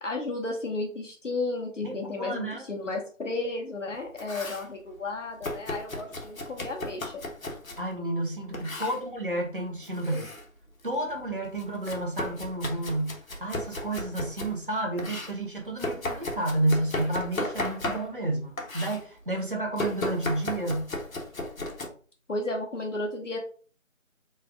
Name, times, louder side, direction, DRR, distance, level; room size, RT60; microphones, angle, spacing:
voice 1, 0.0-7.2 22.3-23.4, left 2 dB, 65° left, 0 dB, 1.0 m, -33 dB
voice 2, 1.8-2.7 7.8-10.3 10.8-20.9, right 1 dB, 40° right, 1 dB, 0.9 m, -31 dB
Domestic sounds home sounds, 3.9-4.7 5.4-7.9 8.5-9.0 9.8-10.4 10.8-14.6 15.0-18.3 18.6-19.0 19.8-21.9, left 2 dB, 85° left, 1.1 m, -35 dB
3.3 x 2.3 x 3.6 m, 0.41 s
figure-of-eight pair, 180°, 40 cm